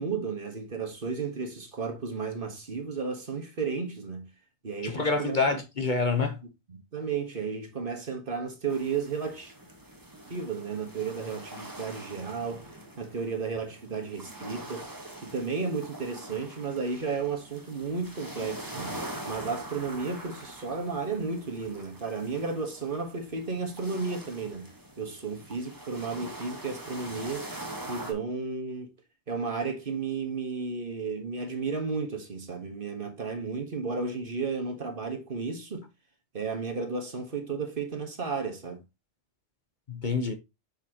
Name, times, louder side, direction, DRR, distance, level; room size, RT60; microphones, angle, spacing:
voice 1, 0.0-4.3 4.6-5.6 6.7-9.5 10.3-12.7 13.0-14.9 15.2-19.0 19.3-24.7 25.0-27.5 27.9-28.9 29.3-35.9 36.3-38.8, right 4 dB, 50° right, 1.6 m, -33 dB
voice 2, 4.8-6.4 39.9-40.3, left 4 dB, 45° left, 1.1 m, -27 dB
sound 1, 8.7-28.1, right 1 dB, 20° right, 1.4 m, -43 dB
7.0 x 5.7 x 2.9 m
omnidirectional pair, 1.2 m